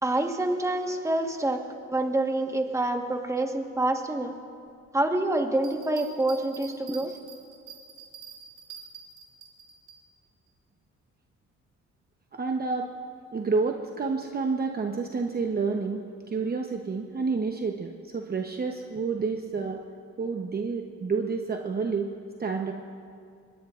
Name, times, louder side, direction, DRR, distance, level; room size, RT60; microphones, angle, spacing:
voice 1, 0.0-4.3 4.9-7.2, right 2 dB, 10° right, 4 dB, 1.4 m, -27 dB
sound 1, 5.5-10.0, right 7 dB, 85° right, 2.8 m, -46 dB
voice 2, 12.3-12.9 13.3-19.8 20.2-22.1 22.4-22.7, right 4 dB, 30° right, 3 dB, 0.9 m, -29 dB
22.5 x 20.0 x 2.5 m, 2.3 s
cardioid pair, 90°, 30 cm